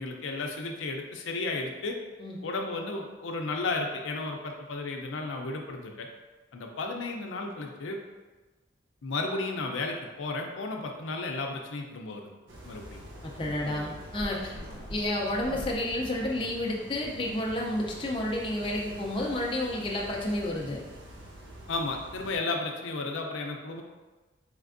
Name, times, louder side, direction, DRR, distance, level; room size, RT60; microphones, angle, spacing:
voice 1, 0.0-2.0 2.4-6.1 6.5-8.0 9.0-12.3 12.6-13.0 13.6-13.9 21.7-23.8, left 3 dB, 80° left, 2 dB, 0.5 m, -33 dB
sound 1, 12.5-22.4, equal, 70° right, 0.7 m, -46 dB
sound 2, 13.1-20.5, equal, 30° right, 1.3 m, -47 dB
voice 2, 13.2-14.5 14.9-20.8, left 1 dB, 25° left, -2 dB, 0.4 m, -30 dB
4.3 x 3.3 x 2.5 m, 1.2 s
head